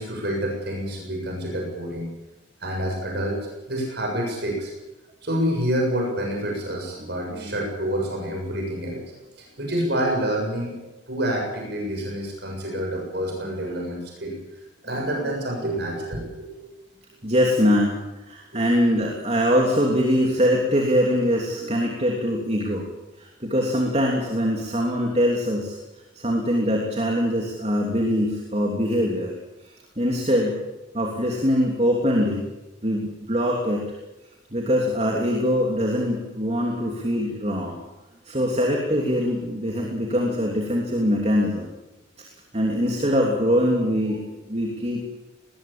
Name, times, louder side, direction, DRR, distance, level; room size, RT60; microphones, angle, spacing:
voice 1, 0.0-2.1 2.6-4.7 5.2-9.0 9.4-10.7 11.1-14.4 14.8-16.7 18.5-18.6, equal, 55° right, 0 dB, 7.2 m, -28 dB
voice 2, 7.0-7.5 17.2-18.0 18.3-22.8 23.2-25.8 26.1-29.3 29.6-30.6 30.9-32.5 32.8-33.8 34.5-37.8 38.2-41.7 42.2-42.3 42.5-45.0, equal, 30° right, 0 dB, 3.1 m, -23 dB
20.5 x 19.5 x 8.8 m, 1.0 s
head